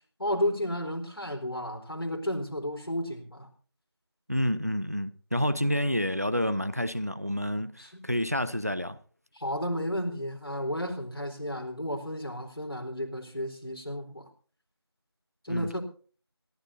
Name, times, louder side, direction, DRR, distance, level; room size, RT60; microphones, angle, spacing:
voice 1, 0.2-3.5 7.8-7.9 9.3-14.3 15.4-15.8, equal, 55° left, 4.0 m, -32 dB
voice 2, 4.3-9.0 15.5-15.8, equal, 35° right, 0.6 m, -29 dB
26.0 x 12.5 x 2.7 m
figure-of-eight pair, 175°, 14 cm